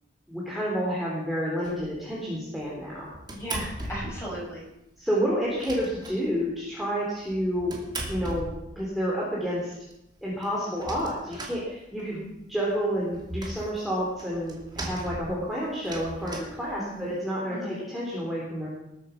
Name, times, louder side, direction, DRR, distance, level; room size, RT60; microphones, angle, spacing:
voice 1, 0.3-3.1 5.0-7.8 8.1-8.5 8.8-9.8 10.2-12.2 12.5-18.7, equal, ahead, -6 dB, 3.6 m, -29 dB
sound 1, 1.6-2.1 2.6-4.3 4.6-4.7 5.0-5.1 5.3-6.7 7.2-9.0 9.5-9.6 9.9-10.0 10.2-12.3 12.6-17.2, right 1 dB, 25° right, 2.7 m, -39 dB
voice 2, 3.3-4.7 12.0-12.3 16.7-17.1 17.5-17.8, equal, 15° left, -5 dB, 7.7 m, -36 dB
20.0 x 9.3 x 5.9 m, 0.88 s
head